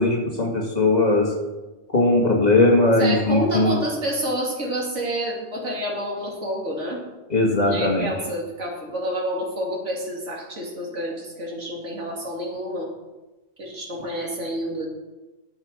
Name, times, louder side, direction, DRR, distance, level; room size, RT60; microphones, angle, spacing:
voice 1, 0.0-1.3 1.9-3.8 7.3-8.1, left 2 dB, 35° left, 0 dB, 2.3 m, -19 dB
voice 2, 3.0-7.0 7.6-12.9 13.6-14.9, equal, 85° right, -1 dB, 3.0 m, -28 dB
12.5 x 7.4 x 6.5 m, 1.1 s
omnidirectional pair, 1.2 m